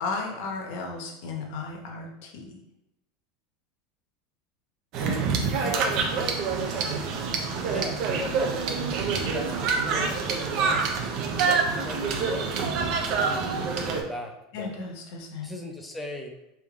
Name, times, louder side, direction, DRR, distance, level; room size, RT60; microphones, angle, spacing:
voice 1, 0.0-2.6 5.4-5.9 14.5-15.5, left 4 dB, 65° left, 1 dB, 0.9 m, -35 dB
sound 1, 4.9-14.0, right 5 dB, 50° right, 0.6 m, -26 dB
voice 2, 5.6-6.3 7.6-8.9 9.2-10.5 11.4-14.7 15.4-16.3, left 1 dB, 10° left, 3 dB, 0.6 m, -38 dB
3.5 x 2.7 x 3.6 m, 0.87 s
supercardioid pair, 135°, 0 cm